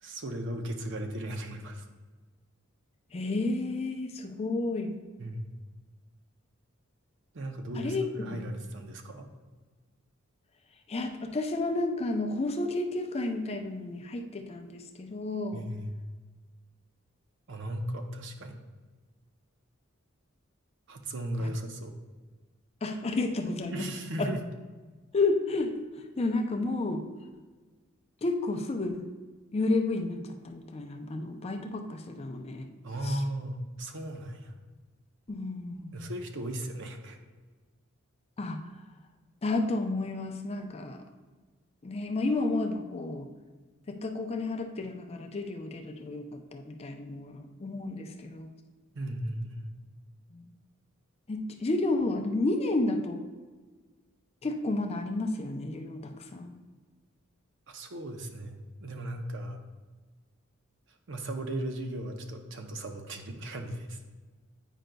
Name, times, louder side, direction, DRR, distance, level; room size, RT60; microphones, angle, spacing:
voice 1, 0.0-1.8 5.2-5.5 7.3-9.3 15.5-15.9 17.5-18.6 20.9-21.9 23.7-24.4 32.8-34.5 35.9-37.2 48.9-49.7 57.7-59.6 61.1-64.0, right 1 dB, 65° right, 4 dB, 0.7 m, -36 dB
voice 2, 3.1-4.9 7.8-8.4 10.9-15.6 21.4-21.5 22.8-23.9 24.2-24.3 25.1-25.7 26.2-27.0 28.2-29.1 29.5-32.7 33.0-33.2 35.3-36.1 38.4-38.6 39.4-41.0 41.8-43.3 43.9-48.5 50.3-50.4 51.3-53.2 54.4-56.6, left 2 dB, 30° left, 4 dB, 0.5 m, -31 dB
9.0 x 5.1 x 2.2 m, 1.4 s
head